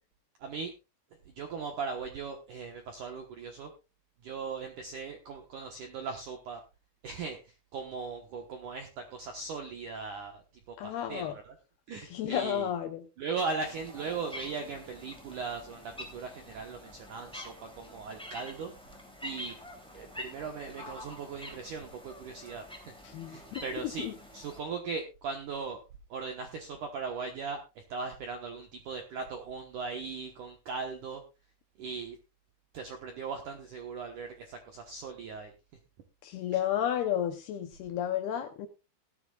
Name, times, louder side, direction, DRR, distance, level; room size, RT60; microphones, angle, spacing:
voice 1, 0.4-0.7 1.3-3.7 4.2-6.6 7.0-10.4 10.7-11.6 11.9-12.7 13.2-18.7 19.2-19.5 19.9-23.0 23.3-24.1 24.3-25.8 26.1-31.2 31.8-32.2 32.7-35.5, right 5 dB, 70° right, 4 dB, 1.9 m, -38 dB
voice 2, 10.8-11.3 12.0-13.1 23.0-24.1 36.2-38.7, left 10 dB, 75° left, 7 dB, 2.4 m, -32 dB
sound 1, 13.6-24.6, left 1 dB, ahead, 1.9 m, -47 dB
18.0 x 13.0 x 2.4 m, 0.28 s
omnidirectional pair, 5.6 m